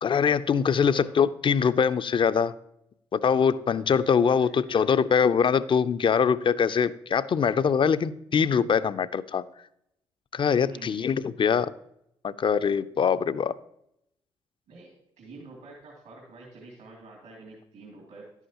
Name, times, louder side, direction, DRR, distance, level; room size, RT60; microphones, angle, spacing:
voice 1, 0.0-2.5 3.1-9.4 10.3-11.7 12.2-13.6, left 6 dB, 40° left, 14 dB, 0.5 m, -23 dB
voice 2, 0.8-1.1 4.3-5.0 10.7-11.0 14.7-18.3, right 2 dB, 75° right, -3 dB, 2.5 m, -47 dB
11.0 x 8.2 x 2.9 m, 0.78 s
hypercardioid pair, 45°, 13 cm